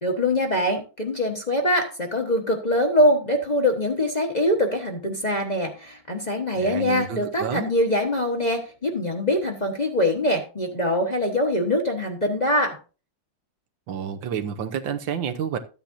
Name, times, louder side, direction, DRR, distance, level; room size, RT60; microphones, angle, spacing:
voice 1, 0.0-12.8, left 1 dB, 25° left, 1.1 m, -23 dB
voice 2, 6.6-7.7 13.9-15.6, right 8 dB, 80° right, 1.7 m, -29 dB
13.0 x 9.0 x 2.6 m
omnidirectional pair, 2.1 m